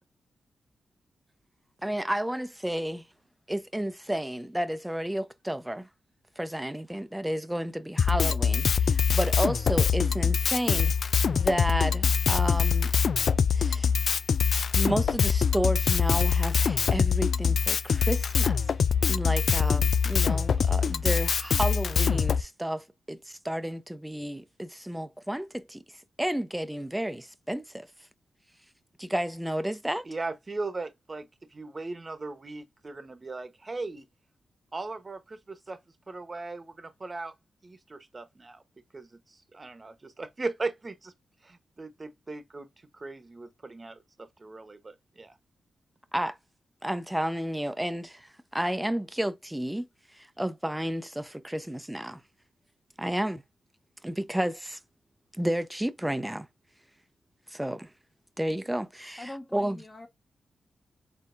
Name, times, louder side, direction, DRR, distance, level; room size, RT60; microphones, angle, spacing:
voice 1, 1.8-3.1 3.5-5.9 6.4-10.9 11.3-12.9 13.5-13.9 14.7-18.6 19.1-25.8 26.2-27.9 29.0-30.1 46.1-46.4 46.8-52.2 53.0-53.4 54.0-54.8 55.4-56.5 57.5-57.9 58.4-59.8, right 1 dB, 10° right, 0.7 m, -31 dB
Drum kit, 8.0-22.4, left 6 dB, 70° left, 0.4 m, -24 dB
voice 2, 30.1-34.0 34.7-35.8 36.1-37.3 37.6-38.6 38.9-41.1 41.4-42.7 42.9-45.4, right 3 dB, 40° right, 1.1 m, -38 dB
voice 3, 59.2-60.1, left 1 dB, 30° left, 1.6 m, -43 dB
4.2 x 3.7 x 2.6 m
supercardioid pair, 40°, 0 cm